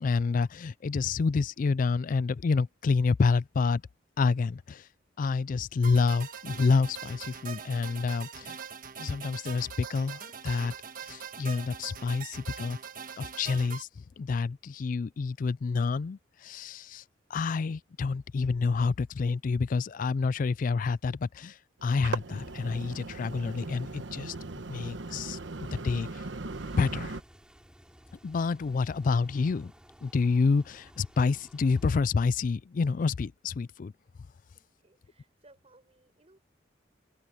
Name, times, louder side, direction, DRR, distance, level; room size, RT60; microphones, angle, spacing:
voice 1, 0.0-3.8 4.2-4.8 5.2-8.6 9.0-10.7 11.1-12.8 13.2-13.9 14.2-17.0 17.3-21.5 21.8-24.3 24.7-25.4 25.7-26.1 26.8-27.2 28.2-29.7 30.0-33.9, left 4 dB, 45° left, 0.3 m, -28 dB
sound 1, 5.8-13.8, right 6 dB, 50° right, 1.4 m, -42 dB
sound 2, 21.8-27.2, right 3 dB, 85° right, 1.1 m, -38 dB
sound 3, 26.5-32.0, equal, 5° right, 4.3 m, -57 dB
voice 2, 34.5-36.4, right 2 dB, 35° right, 6.9 m, -62 dB
head